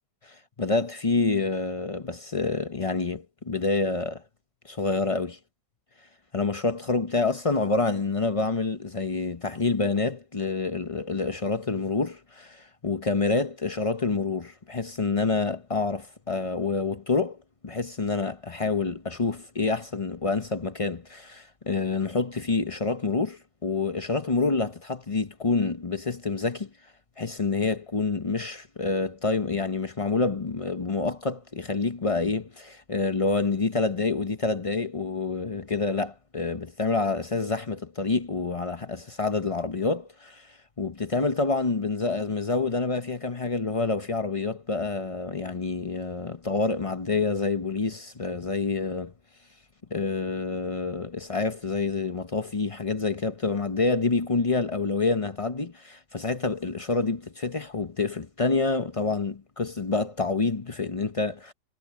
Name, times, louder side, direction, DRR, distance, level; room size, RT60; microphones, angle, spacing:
voice 1, 0.2-4.2 4.6-5.4 6.3-17.4 17.6-26.7 27.2-40.5 40.8-49.1 49.9-61.5, left 3 dB, 50° left, 0.4 m, -27 dB
omnidirectional pair, 2.0 m